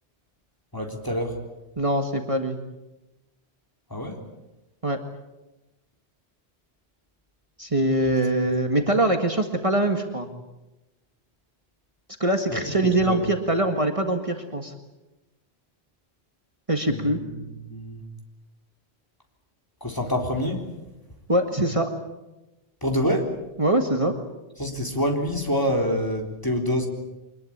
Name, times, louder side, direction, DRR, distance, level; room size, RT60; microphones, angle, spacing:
voice 1, 0.7-1.3 3.9-4.2 12.5-12.6 13.0-13.2 16.9-18.0 19.8-20.6 22.8-23.3 24.6-26.9, equal, 20° left, 2 dB, 3.7 m, -26 dB
voice 2, 1.8-2.6 4.8-5.0 7.6-10.3 12.2-14.7 16.7-17.2 21.3-21.9 23.6-24.1, right 1 dB, 30° right, 5 dB, 1.9 m, -23 dB
24.5 x 21.0 x 8.8 m, 1.0 s
omnidirectional pair, 1.1 m